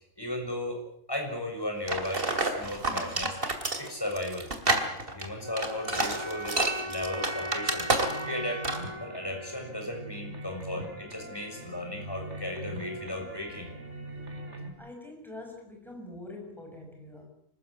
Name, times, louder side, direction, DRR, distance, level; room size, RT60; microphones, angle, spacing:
voice 1, 0.2-0.8 1.1-3.4 3.8-4.5 5.1-7.9 8.2-8.6 9.0-13.7, left 1 dB, 20° left, 2 dB, 6.7 m, -35 dB
sound 1, 1.9-8.4 8.6-8.9, right 2 dB, 50° right, 2.9 m, -29 dB
sound 2, 5.4-10.4, equal, 25° right, 1.6 m, -39 dB
sound 3, 7.1-14.7, right 1 dB, 70° right, 4.0 m, -43 dB
voice 2, 14.8-17.3, left 2 dB, ahead, 1 dB, 6.6 m, -45 dB
25.5 x 14.5 x 9.9 m, 0.69 s
omnidirectional pair, 1.2 m